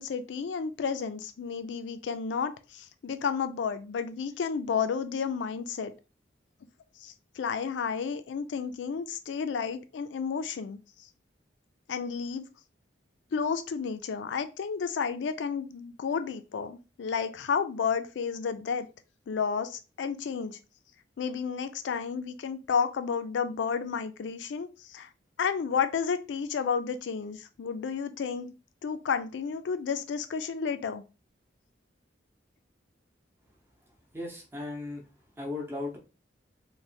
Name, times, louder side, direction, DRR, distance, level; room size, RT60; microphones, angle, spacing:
voice 1, 0.0-5.9 7.0-10.8 11.9-12.5 13.3-18.9 19.3-20.6 21.2-25.1 25.4-28.5 28.8-31.0, left 6 dB, 75° left, 0.4 m, -31 dB
voice 2, 34.1-35.0 35.4-36.0, left 2 dB, 15° right, 0.7 m, -36 dB
3.1 x 2.1 x 2.6 m
head